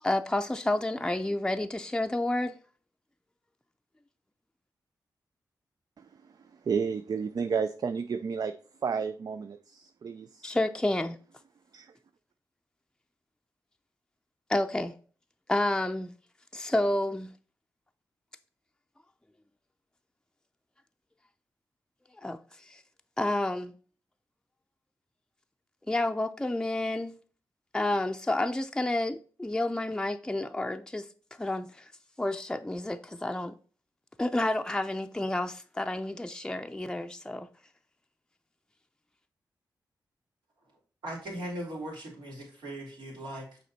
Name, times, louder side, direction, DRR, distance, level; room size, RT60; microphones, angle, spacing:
voice 1, 0.0-2.6 10.4-11.2 14.5-14.9 15.5-16.1 16.5-17.3 22.2-22.8 23.2-23.7 25.9-27.1 27.7-31.1 31.4-31.9 32.2-33.6 34.2-37.5, left 1 dB, 10° left, 0.5 m, -30 dB
voice 2, 6.7-8.5 8.8-10.5 11.7-11.9, right 6 dB, 60° right, 0.4 m, -31 dB
voice 3, 41.0-43.6, right 1 dB, 85° right, 3.2 m, -39 dB
6.5 x 4.2 x 4.2 m
cardioid pair, 55°, 8 cm